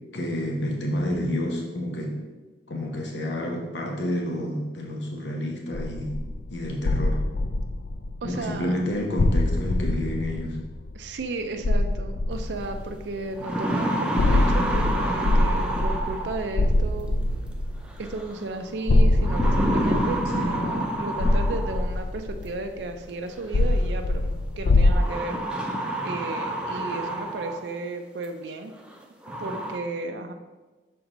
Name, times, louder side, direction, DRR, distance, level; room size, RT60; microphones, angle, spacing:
voice 1, 0.1-2.2 2.7-6.1 6.5-7.2 8.2-10.6 20.3-20.7, left 1 dB, 85° left, 1 dB, 0.9 m, -29 dB
sound 1, 5.7-8.6 9.2-11.2 11.6-13.2 14.2-18.1 18.9-22.9 23.5-25.0, left 2 dB, 55° left, 0.4 m, -24 dB
voice 2, 8.2-8.7 10.9-17.1 18.0-28.7 29.4-30.3, right 2 dB, 80° right, 5 dB, 0.5 m, -34 dB
sound 2, 12.6-12.7 13.2-16.6 18.0-18.4 19.2-22.0 23.3-23.4 24.9-27.8 28.2-28.3 28.9-29.0 29.2-29.8, right 1 dB, 5° right, 0.6 m, -28 dB
6.2 x 4.6 x 3.8 m, 1.2 s
head